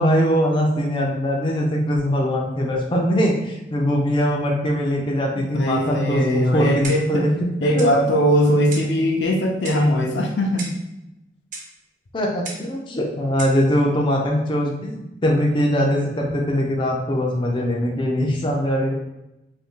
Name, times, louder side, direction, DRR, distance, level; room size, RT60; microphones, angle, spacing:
voice 1, 0.0-7.9 12.1-18.9, equal, 30° left, -1 dB, 0.4 m, -21 dB
voice 2, 5.4-7.3 7.6-10.7, equal, 80° left, 1 dB, 0.6 m, -20 dB
Clock, 6.8-7.2 7.8-8.0 8.7-9.0 9.6-9.9 10.6-10.9 11.5-11.7 12.4-12.7 13.4-13.6, right 3 dB, 45° right, 0.6 m, -35 dB
2.6 x 2.6 x 3.5 m, 0.92 s
head